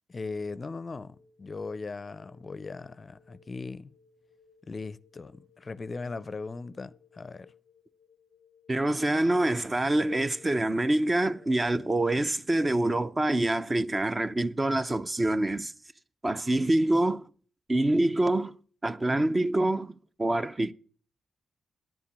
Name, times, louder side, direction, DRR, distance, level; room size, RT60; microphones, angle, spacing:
voice 1, 0.1-3.9 4.7-7.5 12.2-12.3, left 3 dB, 40° left, 0.5 m, -38 dB
sound 1, 0.9-12.1, left 5 dB, 70° right, 3.8 m, -60 dB
voice 2, 8.7-15.7 16.2-17.2 17.7-18.5 18.8-20.7, right 1 dB, 25° right, 0.6 m, -26 dB
10.5 x 5.8 x 8.0 m
supercardioid pair, 55°, 0 cm